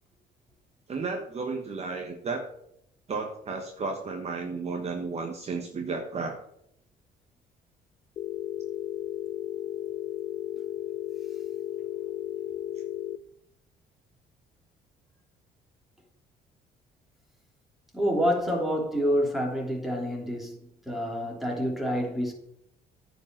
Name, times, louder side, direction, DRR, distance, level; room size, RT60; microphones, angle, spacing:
voice 1, 0.9-2.5 3.1-6.4, right 4 dB, 40° right, 1.3 m, -33 dB
Telephone, 8.2-13.2, left 12 dB, 45° left, 0.4 m, -34 dB
voice 2, 17.9-20.6 20.9-22.3, equal, ahead, 3.1 m, -27 dB
9.6 x 5.4 x 7.4 m
cardioid pair, 110°, 17 cm